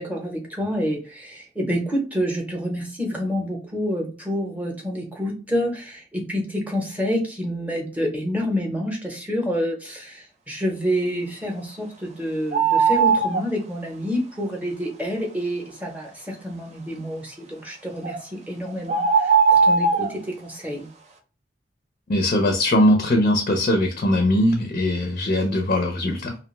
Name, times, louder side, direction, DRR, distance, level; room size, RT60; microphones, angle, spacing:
voice 1, 0.0-20.9, equal, 10° right, 0 dB, 0.7 m, -28 dB
sound 1, 12.5-13.4 18.0-18.2 18.9-20.1, right 5 dB, 35° right, 0.4 m, -18 dB
voice 2, 22.1-26.4, left 1 dB, 40° left, 4 dB, 0.4 m, -20 dB
2.4 x 2.2 x 3.0 m, 0.37 s
head